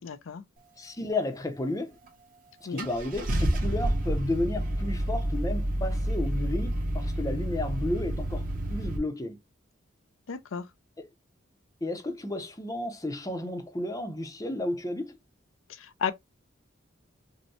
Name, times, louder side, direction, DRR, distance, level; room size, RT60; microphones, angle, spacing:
voice 1, 0.0-0.4 2.7-2.9 10.3-10.6 16.0-16.1, left 6 dB, 80° left, 0.5 m, -32 dB
voice 2, 0.8-2.0 2.7-9.4 11.0-11.1 11.8-15.2, left 1 dB, 15° left, 0.6 m, -32 dB
Car / Engine starting, 2.1-2.2 2.8-9.0, right 1 dB, 45° right, 1.1 m, -29 dB
5.3 x 2.2 x 2.8 m
head